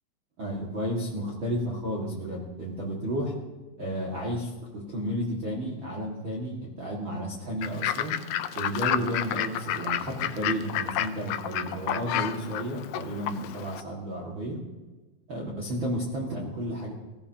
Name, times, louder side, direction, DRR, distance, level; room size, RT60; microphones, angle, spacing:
voice 1, 0.4-3.3 3.8-8.2 8.6-14.6 15.3-16.9, equal, 40° right, -4 dB, 2.5 m, -32 dB
Fowl / Bird, 7.6-13.8, left 11 dB, 90° left, 1.6 m, -31 dB
23.0 x 16.5 x 3.0 m, 1.2 s
omnidirectional pair, 4.0 m